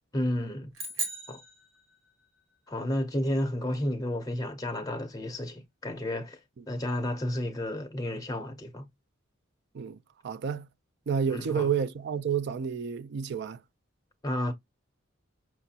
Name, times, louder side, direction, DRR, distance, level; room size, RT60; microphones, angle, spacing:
voice 1, 0.1-0.7 1.3-1.4 2.7-6.4 6.7-8.9 11.3-11.7 14.2-14.5, left 1 dB, 20° left, 0.6 m, -31 dB
sound 1, 0.7-2.4, right 3 dB, 80° right, 1.4 m, -37 dB
voice 2, 10.2-10.6 11.1-13.6, right 7 dB, 55° right, 0.4 m, -30 dB
5.9 x 2.4 x 2.7 m
head